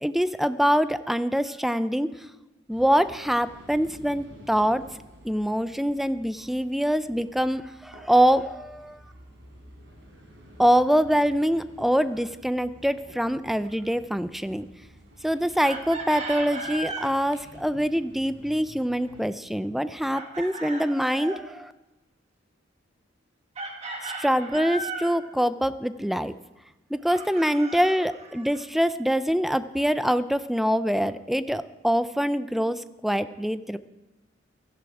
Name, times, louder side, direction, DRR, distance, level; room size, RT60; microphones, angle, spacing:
voice 1, 0.0-2.1 2.7-4.8 5.2-9.0 10.6-14.7 15.2-21.7 24.0-26.3 26.9-33.8, equal, ahead, 13 dB, 0.4 m, -24 dB
sound 1, 2.7-19.2, equal, 65° right, 3.9 m, -51 dB
Chicken rooster, 15.6-17.1 20.1-21.4 23.5-25.2 27.1-28.6, right 3 dB, 35° right, 1.7 m, -36 dB
16.0 x 13.0 x 4.8 m, 1.0 s
head